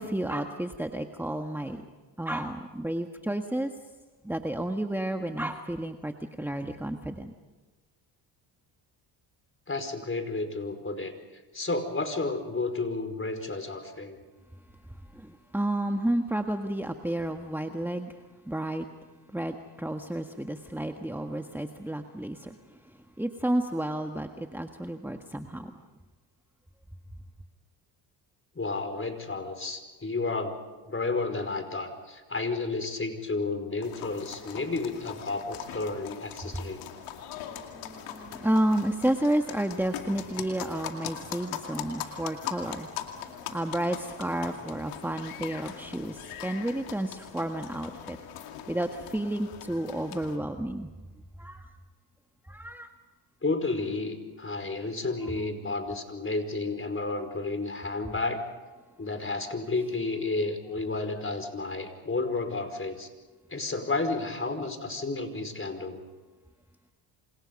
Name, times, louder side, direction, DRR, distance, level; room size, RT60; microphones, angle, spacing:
voice 1, 0.0-1.8 2.2-3.7 4.2-7.3 15.1-18.2 18.5-18.8 19.3-22.5 23.2-25.7 36.5-36.6 37.4-42.9 43.2-48.2 48.7-50.9 51.4-51.6 52.5-52.9, right 1 dB, 5° right, 5 dB, 1.7 m, -31 dB
voice 2, 9.7-11.1 11.5-14.2 28.6-30.6 30.9-36.8 53.4-58.4 59.0-63.1 63.5-66.0, left 3 dB, 25° left, 8 dB, 5.2 m, -31 dB
sound 1, 33.8-50.4, left 10 dB, 90° left, 2.5 m, -41 dB
29.0 x 27.0 x 5.5 m, 1.3 s
supercardioid pair, 60°, 49 cm